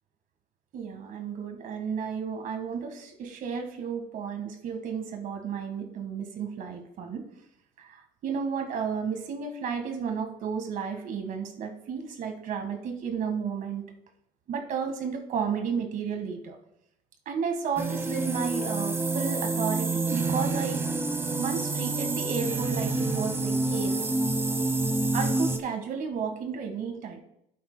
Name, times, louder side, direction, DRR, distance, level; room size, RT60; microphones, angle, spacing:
voice 1, 0.7-7.2 7.8-13.8 14.5-16.6 17.2-20.8 21.4-24.0 25.1-27.2, right 6 dB, 60° right, 5 dB, 1.6 m, -33 dB
sound 1, 17.8-25.6, right 3 dB, 15° right, 1.1 m, -28 dB
12.0 x 8.5 x 2.2 m, 0.78 s
supercardioid pair, 90°, 16 cm